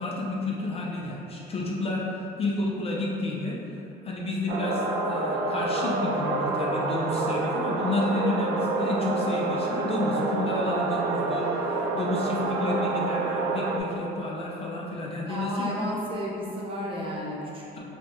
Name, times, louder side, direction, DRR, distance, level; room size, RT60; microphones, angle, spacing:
voice 1, 0.0-3.6 4.0-15.8, left 2 dB, 35° left, -3 dB, 0.5 m, -30 dB
sound 1, 4.5-13.8, right 3 dB, 75° right, 0.4 m, -28 dB
voice 2, 15.3-17.6, equal, 30° right, -5 dB, 0.8 m, -32 dB
3.4 x 3.3 x 2.7 m, 2.9 s
cardioid pair, 110°, 17 cm